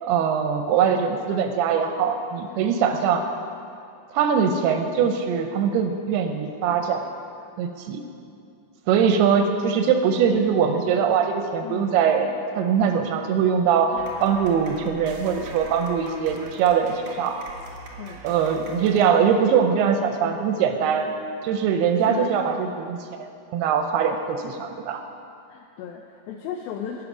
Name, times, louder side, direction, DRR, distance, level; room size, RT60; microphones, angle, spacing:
voice 1, 0.0-3.2 4.1-7.1 7.6-8.0 8.9-12.3 12.5-17.4 18.2-21.1 21.4-25.0, right 7 dB, 80° right, 5 dB, 2.5 m, -22 dB
voice 2, 11.6-12.0 18.0-18.3 21.9-22.6 25.5-27.0, left 8 dB, 85° left, 3 dB, 2.1 m, -35 dB
sound 1, 14.0-19.9, right 3 dB, 65° right, 1.6 m, -42 dB
12.5 x 9.0 x 6.0 m, 2.5 s
omnidirectional pair, 4.9 m